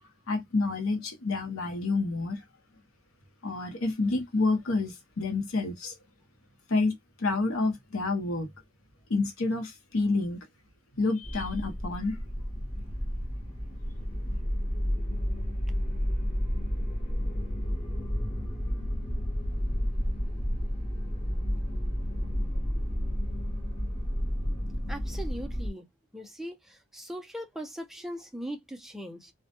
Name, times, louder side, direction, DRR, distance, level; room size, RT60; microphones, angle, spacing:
voice 1, 0.3-2.4 3.4-5.9 6.7-8.5 9.1-10.4 11.0-12.2, left 3 dB, 90° left, 0.7 m, -28 dB
sound 1, 11.2-25.7, equal, 30° left, 0.8 m, -31 dB
voice 2, 24.9-25.9 26.1-29.3, equal, ahead, 0.3 m, -40 dB
2.1 x 2.1 x 2.8 m
head